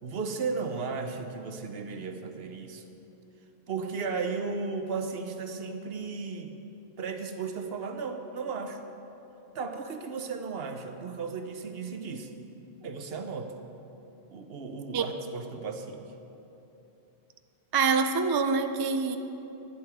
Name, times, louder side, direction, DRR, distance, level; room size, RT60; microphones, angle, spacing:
voice 1, 0.0-2.8 3.7-6.6 7.0-8.8 9.5-12.3 12.8-13.5 14.3-16.0, right 4 dB, 70° right, 6 dB, 1.0 m, -35 dB
voice 2, 17.7-19.2, right 5 dB, 35° right, 7 dB, 0.4 m, -25 dB
11.0 x 10.5 x 4.9 m, 3.0 s
omnidirectional pair, 1.1 m